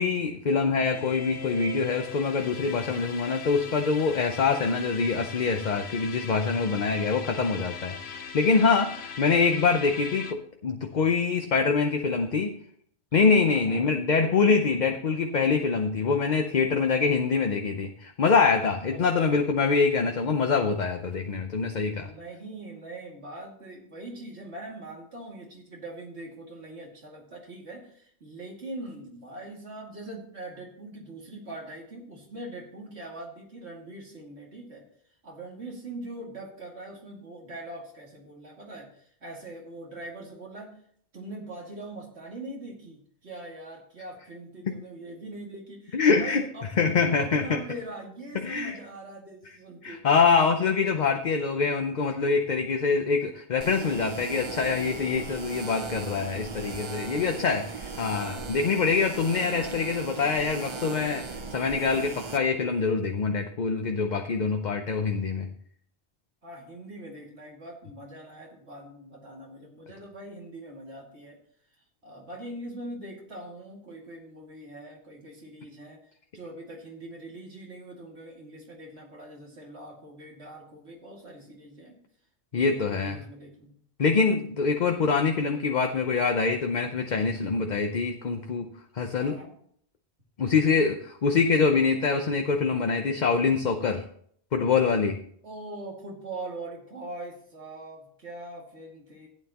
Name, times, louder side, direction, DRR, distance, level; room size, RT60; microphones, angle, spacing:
voice 1, 0.0-12.5 13.1-22.1 45.9-46.4 46.8-47.4 48.4-48.8 49.8-65.5 82.5-83.2 84.0-89.3 90.4-94.0 94.5-95.2, left 5 dB, 45° left, 5 dB, 0.8 m, -25 dB
sound 1, 0.8-10.3, left 6 dB, 70° left, 1.1 m, -40 dB
voice 2, 13.4-13.9 18.9-19.3 22.0-34.8 35.2-40.7 41.1-50.1 66.4-71.4 72.0-82.0 82.5-83.8 84.2-84.6 89.2-89.5 90.4-90.7 95.4-99.3, right 1 dB, 70° right, -1 dB, 2.6 m, -42 dB
sound 2, 53.6-62.4, right 5 dB, 35° right, 0.5 m, -38 dB
14.5 x 9.2 x 2.9 m, 0.62 s
omnidirectional pair, 1.2 m